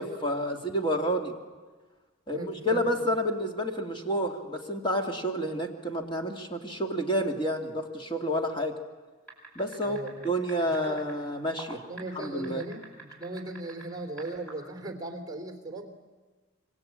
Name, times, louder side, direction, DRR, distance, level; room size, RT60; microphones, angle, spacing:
voice 1, 0.0-1.3 2.3-8.8 9.6-10.0 10.2-11.8 12.2-12.6, equal, 25° left, 3 dB, 2.4 m, -29 dB
voice 2, 2.3-2.9 9.8-10.3 10.6-11.2 11.8-16.0, right 2 dB, 15° right, 5 dB, 2.9 m, -38 dB
sound 1, 9.3-11.1 11.6-13.8 14.2-14.5, right 3 dB, 5° left, 7.9 m, -44 dB
26.5 x 24.0 x 8.9 m, 1.4 s
head